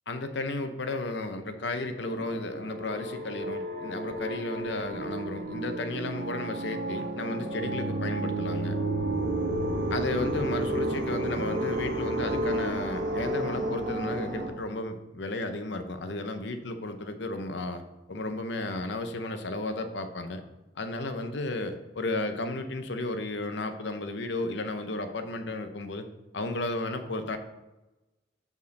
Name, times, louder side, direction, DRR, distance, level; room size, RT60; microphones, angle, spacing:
voice 1, 0.1-8.8 9.9-20.4 20.8-26.1 26.3-27.4, left 2 dB, 60° left, 8 dB, 0.7 m, -33 dB
sound 1, 1.9-14.5, right 1 dB, 65° right, 1.5 m, -32 dB
5.4 x 5.1 x 6.4 m, 1.0 s
head